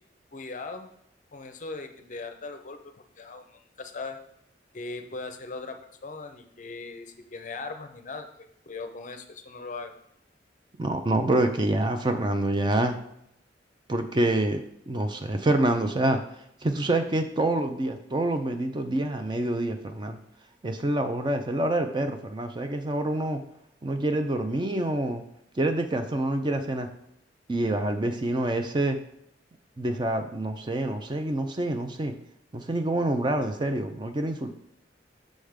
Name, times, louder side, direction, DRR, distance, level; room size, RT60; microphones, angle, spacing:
voice 1, 0.3-0.9 1.3-4.2 4.7-8.3 8.7-9.9, left 3 dB, 45° left, 7 dB, 0.5 m, -39 dB
voice 2, 10.8-13.0 13.9-16.2 16.6-20.2 20.6-23.4 23.8-25.2 25.6-26.9 27.5-29.0 29.8-32.1 32.5-34.5, right 1 dB, 25° right, 7 dB, 0.4 m, -26 dB
6.3 x 3.4 x 5.0 m, 0.74 s
head